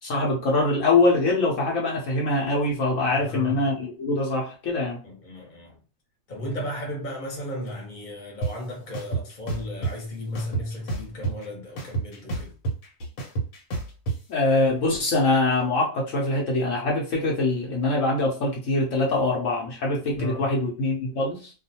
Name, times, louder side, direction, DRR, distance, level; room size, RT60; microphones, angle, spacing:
voice 1, 0.0-5.0 14.3-21.5, left 2 dB, 70° left, 1.0 m, -23 dB
voice 2, 3.1-3.7 5.0-5.8 6.3-12.5 20.2-20.5, left 1 dB, 40° left, 1.0 m, -35 dB
sound 1, 8.4-8.5 8.9-9.9 10.4-11.5 11.8-14.2, right 4 dB, 85° left, 1.3 m, -28 dB
2.4 x 2.3 x 2.7 m
omnidirectional pair, 1.4 m